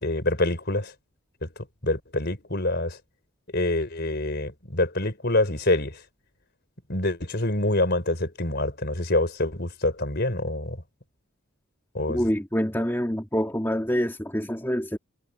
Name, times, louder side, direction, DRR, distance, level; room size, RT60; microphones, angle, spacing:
voice 1, 0.0-0.9 1.4-1.5 1.8-3.0 3.5-6.0 6.9-10.8 11.9-12.2, left 2 dB, 45° left, 4.6 m, -26 dB
voice 2, 12.1-15.0, equal, 10° left, 2.6 m, -26 dB
head